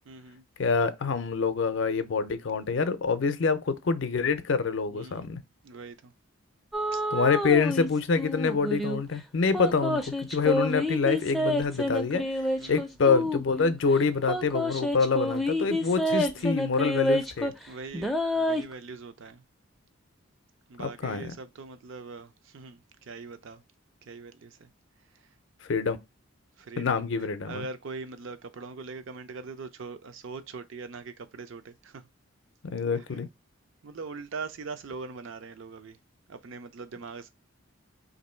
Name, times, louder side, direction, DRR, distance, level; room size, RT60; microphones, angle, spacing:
voice 1, 0.1-0.4 4.9-5.3 5.6-6.1 6.9-7.0 12.6-12.8 15.6-15.9 16.3-16.6 17.7-19.4 20.7-22.8 23.1-23.6 24.1-24.7 26.7-26.9 27.5-32.0 33.8-36.0 36.3-37.3, right 4 dB, 65° right, 0.5 m, -41 dB
voice 2, 0.6-5.4 7.1-12.2 12.7-17.5 20.8-21.3 25.7-26.0 26.8-27.7 32.6-33.3, left 5 dB, 60° left, 0.5 m, -26 dB
sound 1, 6.7-7.9 8.2-9.0 9.5-13.7 14.3-17.6 17.9-18.7, left 1 dB, ahead, 0.4 m, -28 dB
3.0 x 2.6 x 4.3 m
head